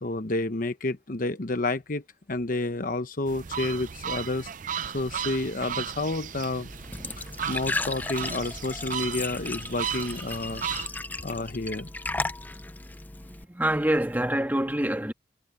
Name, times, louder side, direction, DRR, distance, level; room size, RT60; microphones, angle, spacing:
voice 1, 0.0-2.0 2.3-4.5 4.9-6.7 7.2-10.6 11.2-11.9, left 2 dB, 50° left, 1.0 m, -30 dB
sound 1, 3.3-10.9, right 8 dB, 45° right, 0.6 m, -35 dB
Glass / Trickle dribble / Fill (with liquid), 6.7-13.4, left 2 dB, 10° left, 0.4 m, -35 dB
voice 2, 13.2-15.1, right 1 dB, 10° right, 1.7 m, -26 dB
head